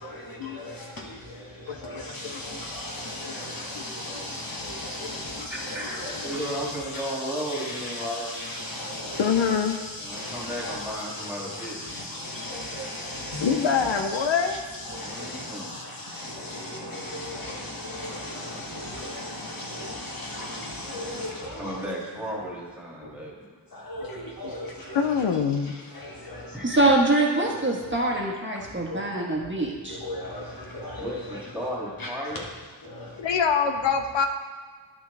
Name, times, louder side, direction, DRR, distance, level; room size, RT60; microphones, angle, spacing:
voice 1, 0.0-21.8 22.3-22.5 23.7-25.2 25.6-26.7 28.9-29.0 29.9-31.5 32.0-32.5 32.8-33.1, left 1 dB, 50° left, -2 dB, 1.6 m, -36 dB
voice 2, 1.7-2.4 3.3-3.4 3.8-3.9 5.0-5.2 6.3-6.4 9.2-9.8 13.4-14.6 24.4-24.5 24.9-25.7 33.2-34.3, left 6 dB, 90° left, 6 dB, 0.7 m, -25 dB
voice 3, 5.5-8.3 10.0-11.8 15.0-15.7 21.6-23.6 26.2-26.8 31.0-32.4, equal, 5° right, -5 dB, 2.2 m, -34 dB
voice 4, 26.6-30.0, right 2 dB, 25° right, -2 dB, 1.3 m, -24 dB
11.0 x 5.9 x 3.4 m, 1.5 s
wide cardioid pair, 90°, 43 cm